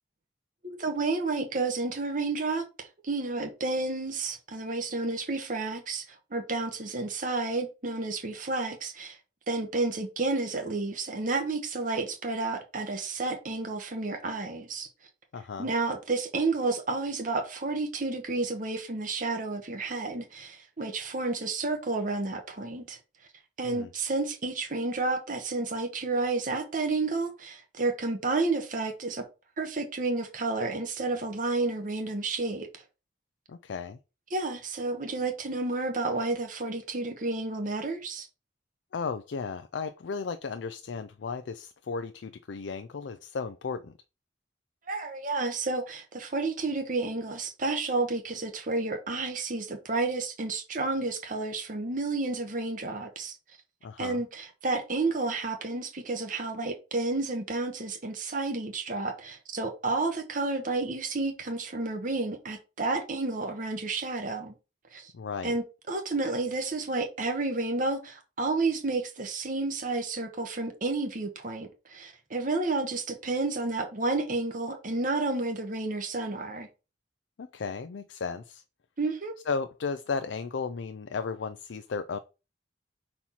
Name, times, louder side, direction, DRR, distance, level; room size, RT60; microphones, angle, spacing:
voice 1, 0.6-9.2 9.5-14.9 15.6-23.0 23.6-29.2 29.6-32.8 34.3-38.3 44.9-53.3 54.0-64.5 64.9-65.1 65.4-76.7 79.0-79.3, right 3 dB, 45° right, 1.0 m, -31 dB
voice 2, 15.3-15.7 23.6-23.9 33.5-34.0 38.9-43.9 53.8-54.2 65.1-65.5 77.4-78.6 79.5-82.2, left 5 dB, 85° left, 0.4 m, -34 dB
4.4 x 4.3 x 5.6 m
head